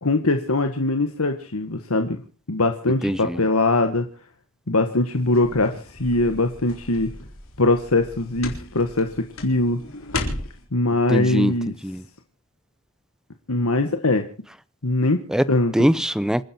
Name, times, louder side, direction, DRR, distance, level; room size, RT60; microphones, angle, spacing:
voice 1, 0.0-2.2 2.5-4.1 4.7-5.7 6.0-7.1 7.6-9.8 10.7-11.7 13.5-14.3 14.8-15.2 15.5-15.7, left 2 dB, 85° left, 1.6 m, -21 dB
voice 2, 3.0-3.4 11.1-12.0 15.3-15.4 15.7-16.4, equal, 5° right, 0.7 m, -22 dB
sound 1, 5.1-10.6, left 2 dB, 70° left, 3.9 m, -35 dB
27.5 x 10.5 x 4.5 m
head